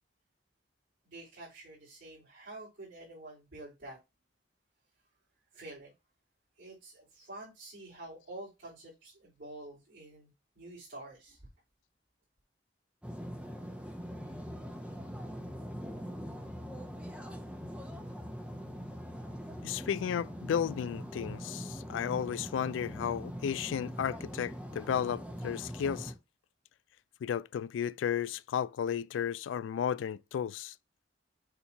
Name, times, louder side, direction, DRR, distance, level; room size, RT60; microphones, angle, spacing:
voice 1, 1.0-4.0 5.5-5.9 6.6-11.4, right 2 dB, 85° right, 3.3 m, -48 dB
sound 1, 13.0-26.1, equal, 5° right, 0.9 m, -42 dB
voice 2, 19.6-26.1 27.2-30.7, left 8 dB, 90° left, 0.3 m, -33 dB
7.0 x 2.8 x 5.6 m
head